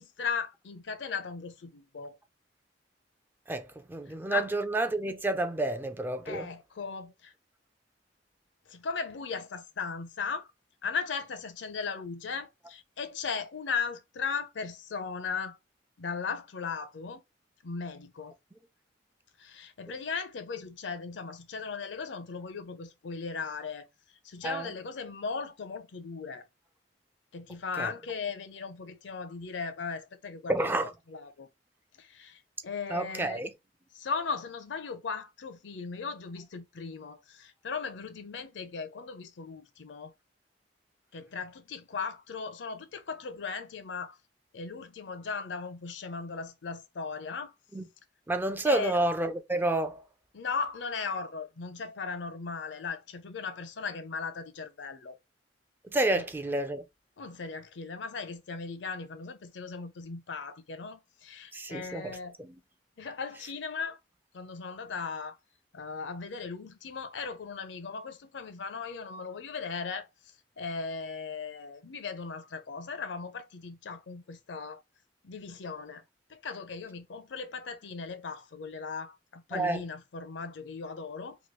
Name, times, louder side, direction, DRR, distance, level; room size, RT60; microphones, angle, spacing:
voice 1, 0.0-2.2 4.1-4.5 6.2-7.3 8.7-10.5 10.8-15.6 16.0-17.2 17.6-18.3 19.4-23.9 24.2-26.5 27.3-30.8 31.1-31.5 31.9-33.4 33.9-40.1 41.1-44.2 44.5-47.5 48.6-49.0 50.3-55.2 56.1-56.2 57.2-62.4 63.0-64.0 64.3-65.4 65.7-70.1 70.6-74.8 75.2-76.0 76.3-81.4, left 5 dB, 75° left, 0.5 m, -37 dB
voice 2, 3.5-6.5 24.4-24.7 27.8-27.9 30.5-30.9 32.9-33.5 47.7-47.8 48.3-50.0 55.8-56.8 61.5-62.5 79.5-79.8, right 2 dB, 10° right, 0.3 m, -30 dB
3.0 x 2.3 x 3.1 m
head